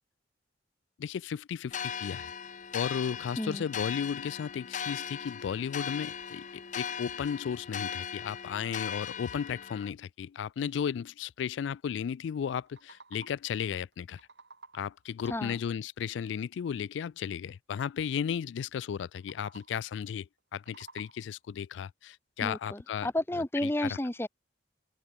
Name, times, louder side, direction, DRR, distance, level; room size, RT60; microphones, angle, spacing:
voice 1, 1.0-2.3 2.7-14.2 14.7-23.1 23.8-23.9, left 7 dB, 70° left, 0.3 m, -34 dB
sound 1, 1.7-9.9, left 7 dB, 40° left, 0.7 m, -38 dB
sound 2, 12.5-13.6 13.9-15.1 19.0-19.9 20.4-21.5, right 4 dB, 65° right, 5.1 m, -54 dB
voice 2, 15.2-15.6 22.4-24.3, left 1 dB, 10° left, 0.9 m, -32 dB
open air
head